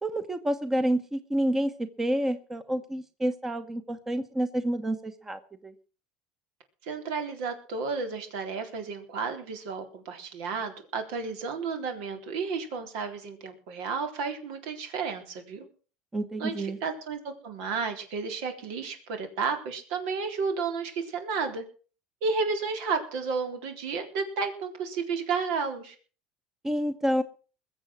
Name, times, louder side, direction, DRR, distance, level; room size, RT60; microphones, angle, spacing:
voice 1, 0.0-5.7 16.1-16.8 26.6-27.2, right 1 dB, 10° right, 11 dB, 1.0 m, -29 dB
voice 2, 6.8-15.7 16.4-21.6 22.2-26.0, right 5 dB, 75° right, 6 dB, 3.8 m, -32 dB
21.5 x 7.6 x 6.2 m, 0.39 s
cardioid pair, 145°, 3 cm